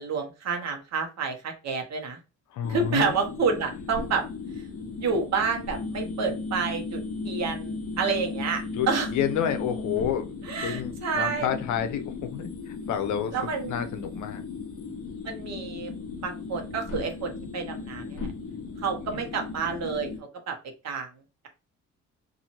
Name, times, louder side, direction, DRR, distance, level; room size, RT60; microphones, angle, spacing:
voice 1, 0.0-2.2 2.7-4.3 5.0-9.1 10.4-11.5 13.3-13.8 15.2-15.9 16.2-18.3 18.8-20.1 20.5-20.6 20.8-21.1, right 5 dB, 60° right, 1.0 m, -29 dB
voice 2, 2.5-3.1 8.7-10.3 10.6-14.5 19.1-19.3, left 9 dB, 75° left, 0.6 m, -30 dB
sound 1, 2.6-20.2, left 4 dB, 50° left, 0.9 m, -36 dB
2.6 x 2.5 x 2.9 m
cardioid pair, 90°, 30 cm